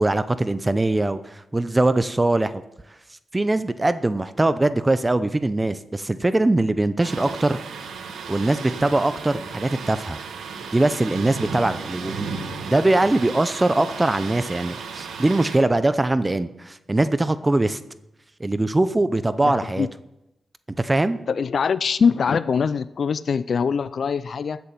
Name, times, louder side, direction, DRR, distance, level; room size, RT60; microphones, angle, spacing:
voice 1, 0.0-2.6 3.3-7.6 8.3-10.2 10.7-12.3 12.6-17.8 18.4-19.9 20.8-21.2, right 2 dB, 25° right, 13 dB, 0.7 m, -21 dB
Thunder, 7.0-15.6, right 5 dB, 85° right, 1.5 m, -34 dB
voice 2, 19.4-19.9 21.3-24.6, left 6 dB, 65° left, 16 dB, 0.4 m, -23 dB
13.0 x 7.0 x 7.4 m, 0.90 s
cardioid pair, 55°, 0 cm